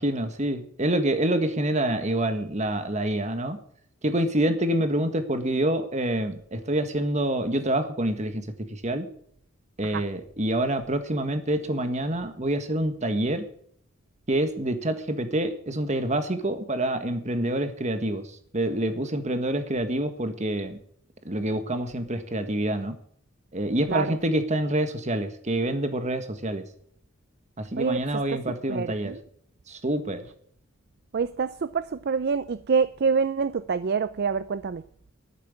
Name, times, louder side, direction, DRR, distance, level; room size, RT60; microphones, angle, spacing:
voice 1, 0.0-3.6 4.0-9.1 9.8-13.4 14.3-20.8 21.2-23.0 23.5-26.7 27.6-29.1 29.7-30.3, right 1 dB, 35° right, 1.6 m, -27 dB
voice 2, 27.8-28.4 28.7-29.2 31.1-34.8, right 5 dB, 55° right, 0.4 m, -26 dB
11.5 x 8.9 x 8.5 m
head